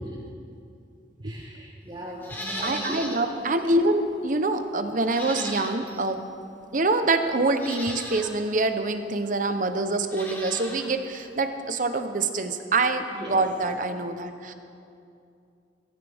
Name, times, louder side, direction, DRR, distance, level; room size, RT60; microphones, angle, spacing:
voice 1, 1.2-3.1 3.6-3.8 13.1-13.4, right 1 dB, 25° right, -4 dB, 4.0 m, -37 dB
Livestock farm animals working animals, 2.2-3.3 3.7-3.8 5.0-6.1 6.9-7.0 7.5-8.3 10.0-10.9 11.2-11.3, left 1 dB, 10° left, 1.7 m, -36 dB
voice 2, 2.6-6.2 6.7-14.5, right 2 dB, 45° right, 8 dB, 0.9 m, -25 dB
22.0 x 13.0 x 3.6 m, 2.5 s
head